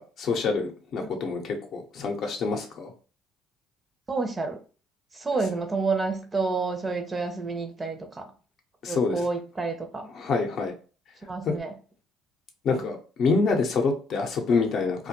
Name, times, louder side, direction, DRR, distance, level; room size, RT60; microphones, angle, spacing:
voice 1, 0.0-2.9 8.8-9.2 10.1-10.7 11.4-11.6 12.6-15.1, left 4 dB, 60° left, 0.6 m, -26 dB
voice 2, 4.1-4.6 5.1-8.3 8.9-10.1 11.3-11.7, right 3 dB, 25° right, 0.5 m, -29 dB
2.2 x 2.1 x 2.8 m
supercardioid pair, 75°, 0 cm